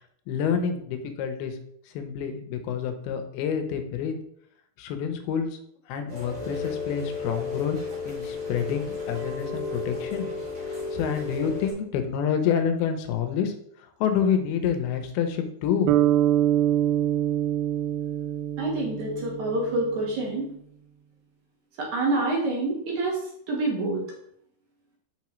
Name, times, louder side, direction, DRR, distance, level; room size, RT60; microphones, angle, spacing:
voice 1, 0.3-1.6 1.9-4.2 4.8-5.5 5.9-7.8 8.1-10.3 10.9-15.9, left 7 dB, 80° left, 7 dB, 2.6 m, -28 dB
Rain, 6.1-11.7, left 4 dB, 45° right, 2.4 m, -33 dB
sound 1, 15.9-20.1, right 11 dB, 90° right, 1.9 m, -25 dB
voice 2, 18.6-20.5 21.8-23.2 23.5-24.1, right 2 dB, 60° right, -2 dB, 2.3 m, -27 dB
6.3 x 5.8 x 3.1 m, 0.69 s
omnidirectional pair, 4.5 m